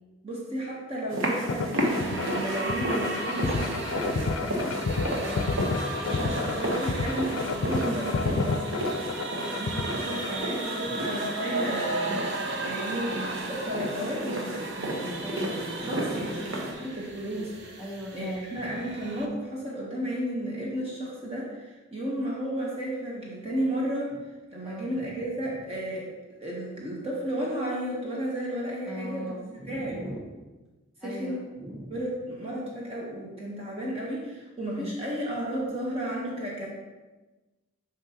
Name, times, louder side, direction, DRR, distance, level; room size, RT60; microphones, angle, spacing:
voice 1, 0.2-4.8 6.0-8.6 9.6-17.7 18.1-24.2 24.5-26.1 26.4-29.3 29.6-30.0 31.0-31.5 31.9-36.7, right 1 dB, 30° right, -4 dB, 1.0 m, -33 dB
sound 1, 1.1-16.7, right 1 dB, 80° right, 1.0 m, -33 dB
sound 2, 1.5-10.4, left 4 dB, 80° left, 0.4 m, -31 dB
sound 3, 1.8-19.3, right 2 dB, 60° right, 0.7 m, -36 dB
voice 2, 5.2-5.8 9.3-10.5 10.8-11.1 15.2-16.3 17.8-18.8 24.6-25.1 28.8-30.2 31.0-32.0 34.8-35.0, equal, 5° right, -5 dB, 1.3 m, -40 dB
7.3 x 5.2 x 2.9 m, 1.2 s
head